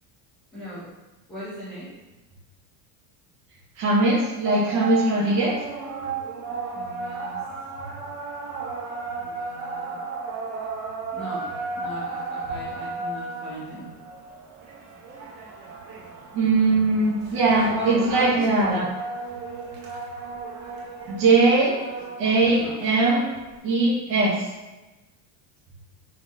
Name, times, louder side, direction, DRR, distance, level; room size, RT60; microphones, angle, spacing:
voice 1, 0.5-0.9 1.3-1.9 5.2-5.5 6.7-7.4 9.2-10.0 11.1-13.9 17.5-18.8 22.6-22.8, equal, ahead, -11 dB, 0.6 m, -36 dB
voice 2, 3.8-5.5 16.3-18.8 21.1-21.8 22.2-23.3 23.6-24.4, right 3 dB, 50° right, -5 dB, 0.8 m, -20 dB
sound 1, 4.4-23.6, right 4 dB, 75° right, 1.1 m, -35 dB
3.9 x 2.8 x 3.5 m, 1.1 s
cardioid pair, 175°, 42 cm